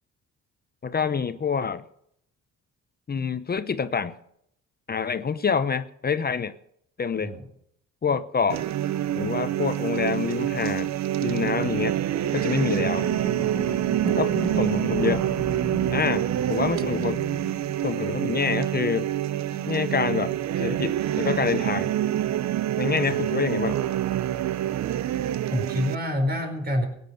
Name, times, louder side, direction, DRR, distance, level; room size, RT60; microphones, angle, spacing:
voice 1, 0.8-1.8 3.1-4.1 4.9-6.5 7.0-7.3 8.0-8.6 9.1-10.9 11.2-12.0 12.3-13.1 14.2-15.2 15.9-17.2 17.8-19.1 19.7-21.9 22.8-23.8, left 6 dB, 30° left, 12 dB, 0.8 m, -27 dB
sound 1, 8.5-25.9, right 12 dB, 65° right, 0.7 m, -26 dB
sound 2, 12.7-20.1 20.7-20.8, left 1 dB, 10° left, 1.1 m, -37 dB
voice 2, 25.5-26.8, left 1 dB, 30° right, 5 dB, 4.8 m, -27 dB
16.5 x 9.7 x 6.7 m, 0.72 s
cardioid pair, 90°, 30 cm